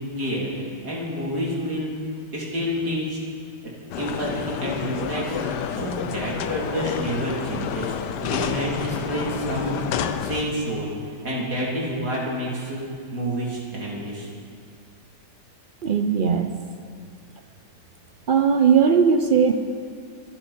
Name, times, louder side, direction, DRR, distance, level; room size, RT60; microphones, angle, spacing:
voice 1, 0.0-1.9 2.3-3.2 4.0-9.8 10.2-12.8 13.1-14.3, equal, 65° right, -5 dB, 4.2 m, -29 dB
sound 1, 3.9-10.4, left 8 dB, 75° left, 1.3 m, -29 dB
voice 2, 15.8-16.5 18.3-19.5, right 6 dB, 85° right, 6 dB, 0.4 m, -18 dB
25.5 x 11.0 x 4.5 m, 2.2 s
omnidirectional pair, 1.9 m